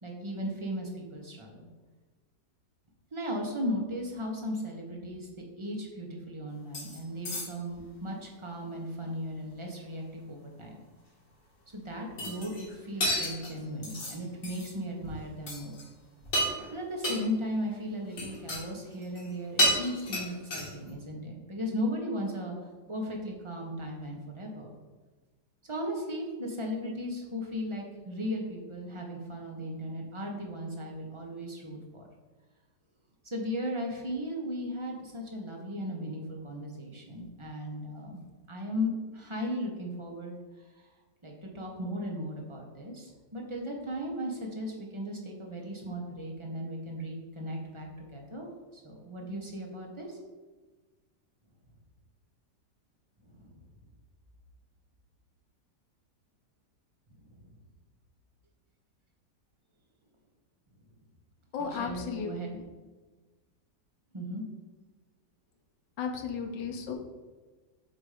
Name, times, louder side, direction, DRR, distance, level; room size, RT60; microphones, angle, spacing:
voice 1, 0.0-1.7 3.1-10.7 11.7-15.8 16.7-22.5 22.9-24.7 25.6-32.1 33.2-38.2 38.5-40.3 40.7-40.8 41.2-48.5 48.7-50.2 53.3-53.5 57.2-57.5 61.7-62.5 64.1-64.4, equal, 25° right, -1 dB, 0.7 m, -36 dB
sound 1, 6.7-7.0 7.2-7.8 12.2-12.7 13.0-14.2 14.4-14.7 15.0-15.2 15.5-15.9 16.2-16.7 17.0-17.2 18.1-18.6 18.9-19.3 19.6-20.9, equal, 50° left, 1.9 m, -31 dB
voice 2, 61.5-62.6 66.0-66.9, left 6 dB, 85° left, 3 dB, 1.5 m, -35 dB
7.9 x 2.6 x 4.9 m, 1.3 s
omnidirectional pair, 1.9 m